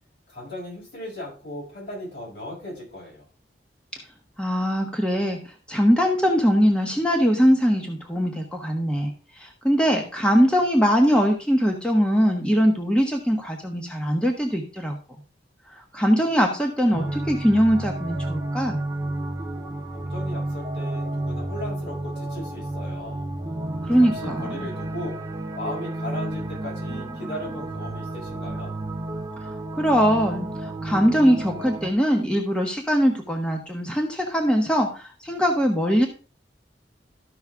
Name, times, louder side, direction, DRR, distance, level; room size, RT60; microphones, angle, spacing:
voice 1, 0.3-3.2 19.9-23.3 24.0-25.2 25.5-28.7, left 1 dB, 70° left, -4 dB, 6.2 m, -37 dB
voice 2, 4.4-5.4 5.7-9.1 9.4-15.0 15.9-18.8 23.9-24.7 29.8-36.1, equal, 5° left, 2 dB, 1.1 m, -21 dB
sound 1, 16.9-31.9, right 1 dB, 20° right, 1.2 m, -31 dB
13.0 x 5.6 x 3.5 m, 0.34 s
head